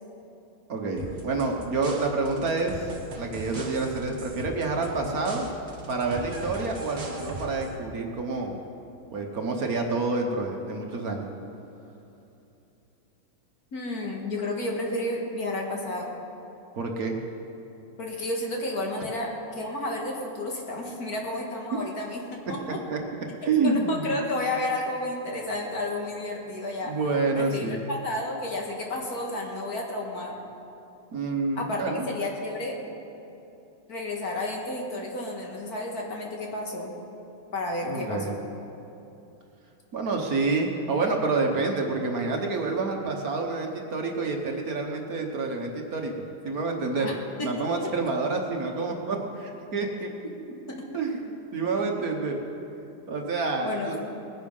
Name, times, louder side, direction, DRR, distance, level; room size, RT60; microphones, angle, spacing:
voice 1, 0.7-5.5 5.9-8.6 9.1-11.3 16.8-17.2 22.9-23.0 23.4-24.2 26.8-27.7 31.1-32.1 37.8-38.3 39.9-47.1 47.4-50.1 50.9-52.4 53.1-54.0, right 3 dB, 55° right, 2 dB, 1.5 m, -28 dB
sound 1, 1.0-7.7, right 2 dB, 35° right, 1.6 m, -39 dB
voice 2, 13.7-16.1 18.0-22.2 22.5-22.8 23.4-26.9 27.3-30.3 31.6-32.8 33.9-36.9 37.5-38.4 47.0-47.1 47.4-47.5 47.8-47.9 50.2-50.3 50.7-50.9 53.6-54.0, left 1 dB, 55° left, 0 dB, 2.1 m, -31 dB
20.0 x 10.0 x 5.5 m, 2.9 s
omnidirectional pair, 2.0 m